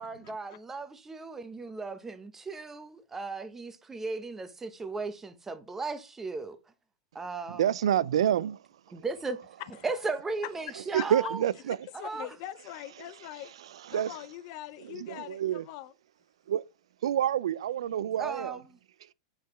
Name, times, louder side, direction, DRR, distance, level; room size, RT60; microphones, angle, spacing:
voice 1, 0.0-6.6 7.1-7.7 8.9-9.4 9.8-11.4 11.9-12.3 18.2-18.8, right 3 dB, 10° right, 0.8 m, -36 dB
voice 2, 7.5-8.6 10.9-11.9 13.9-14.2 14.8-15.6 16.5-16.6 17.0-18.6, right 10 dB, 80° right, 0.3 m, -28 dB
voice 3, 12.0-13.5 13.9-15.9, left 14 dB, 50° left, 0.5 m, -42 dB
7.9 x 4.8 x 3.1 m
hypercardioid pair, 130°, 3 cm